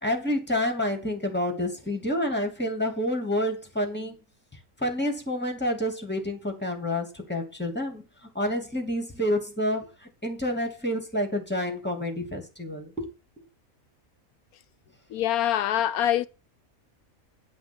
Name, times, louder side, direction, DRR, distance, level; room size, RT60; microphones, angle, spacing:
voice 1, 0.0-4.2 4.8-8.0 8.3-13.1, left 1 dB, 5° left, 2.6 m, -28 dB
voice 2, 15.1-16.3, left 11 dB, 90° left, 1.2 m, -24 dB
10.5 x 5.9 x 6.1 m
omnidirectional pair, 1.5 m